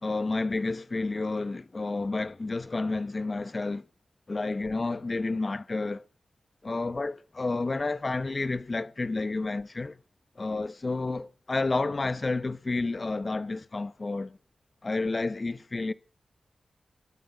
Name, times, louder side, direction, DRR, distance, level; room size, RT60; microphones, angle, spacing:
voice 1, 0.0-3.8 4.3-6.0 6.6-10.0 10.4-14.4 14.8-15.9, left 3 dB, 45° left, 1.1 m, -30 dB
21.0 x 13.0 x 4.1 m
cardioid pair, 50°, 0 cm